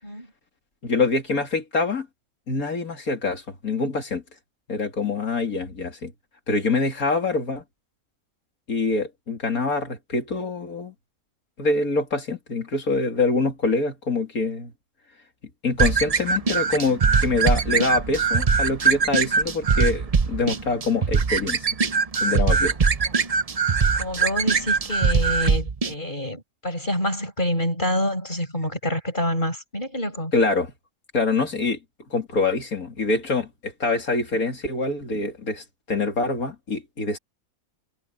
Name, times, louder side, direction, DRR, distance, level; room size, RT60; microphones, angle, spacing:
voice 1, 0.8-2.1 2.5-4.2 4.7-6.1 6.5-7.6 8.7-10.9 11.6-14.7 15.6-21.7 22.2-22.8 30.3-30.7 31.1-31.8 32.1-37.2, left 3 dB, 85° left, 3.5 m, -25 dB
sound 1, 15.8-25.9, right 5 dB, 35° right, 0.6 m, -22 dB
voice 2, 23.9-30.3, left 1 dB, 35° left, 7.2 m, -27 dB
omnidirectional pair, 1.5 m